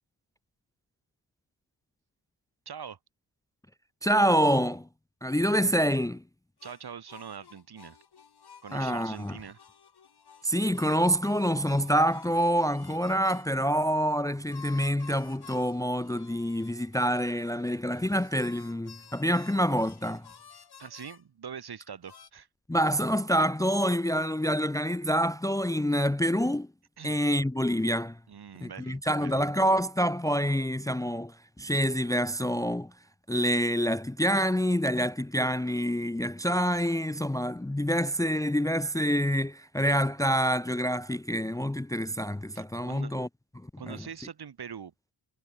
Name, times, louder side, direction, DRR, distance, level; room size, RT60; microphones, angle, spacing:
voice 1, 2.7-3.0 6.6-8.0 8.6-9.6 20.8-22.5 27.0-27.2 28.3-29.4 42.5-43.1 43.8-44.9, right 7 dB, 65° right, 2.2 m, -43 dB
voice 2, 4.0-4.9 5.2-6.2 8.7-9.4 10.4-20.3 22.7-26.7 27.0-28.2 28.6-32.9 33.3-43.3 43.9-44.0, equal, 10° left, 0.6 m, -27 dB
sound 1, 6.6-13.5 14.5-21.2 22.1-22.3, left 7 dB, 65° left, 3.7 m, -52 dB
wide cardioid pair, 150°, 41 cm